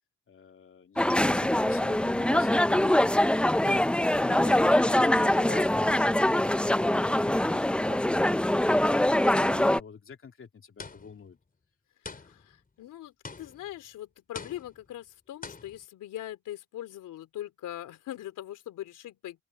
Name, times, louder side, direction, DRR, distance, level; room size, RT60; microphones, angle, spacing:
voice 1, 0.3-3.8 4.2-11.4, left 6 dB, 45° left, 2.9 m, -46 dB
sound 1, 1.0-9.8, left 1 dB, 5° left, 0.5 m, -23 dB
sound 2, 10.8-11.3 12.1-12.6 13.2-13.8 14.3-14.9 15.4-15.8, left 4 dB, 30° left, 4.6 m, -44 dB
voice 2, 12.0-19.4, left 13 dB, 85° left, 3.6 m, -41 dB
open air
cardioid pair, 85°, 31 cm